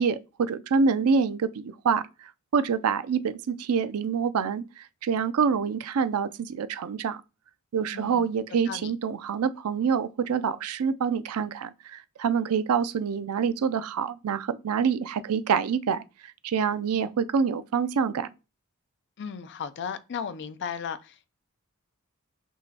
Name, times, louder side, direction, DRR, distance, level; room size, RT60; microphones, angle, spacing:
voice 1, 0.0-7.2 7.7-16.0 16.4-18.3, right 6 dB, 80° right, 0.4 m, -26 dB
voice 2, 7.9-8.2 8.7-8.9 19.2-21.3, left 7 dB, 55° left, 0.4 m, -35 dB
6.2 x 3.0 x 2.8 m
head